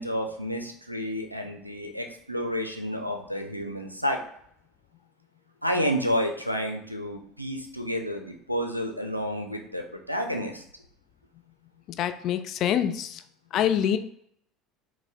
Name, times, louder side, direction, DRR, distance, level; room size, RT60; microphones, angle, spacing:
voice 1, 0.0-4.2 5.6-10.6, equal, 90° right, 4 dB, 0.4 m, -30 dB
voice 2, 12.0-13.2 13.5-14.0, left 9 dB, 45° left, 9 dB, 0.3 m, -25 dB
4.7 x 2.1 x 3.6 m, 0.69 s
figure-of-eight pair, 70°, 0 cm